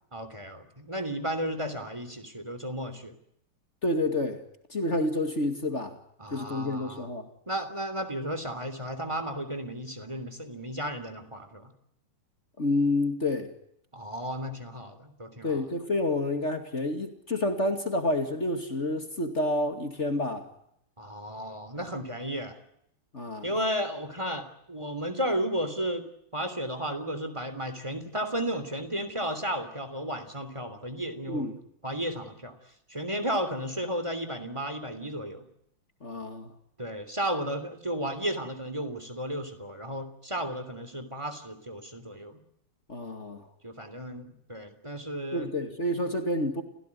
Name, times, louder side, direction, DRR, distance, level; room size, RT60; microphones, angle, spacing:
voice 1, 0.1-3.1 6.2-7.1 7.5-11.7 13.9-15.8 21.0-22.6 23.4-26.1 26.3-31.5 31.8-32.6 32.9-35.4 36.8-42.4 43.6-45.5, equal, 15° right, 3.1 m, -33 dB
voice 2, 3.8-4.4 4.7-6.0 6.3-7.3 12.6-13.5 15.4-20.5 23.1-23.5 31.3-31.6 36.0-36.5 42.9-43.5 45.3-46.6, left 1 dB, 35° left, 2.6 m, -29 dB
29.5 x 17.0 x 9.8 m
omnidirectional pair, 2.4 m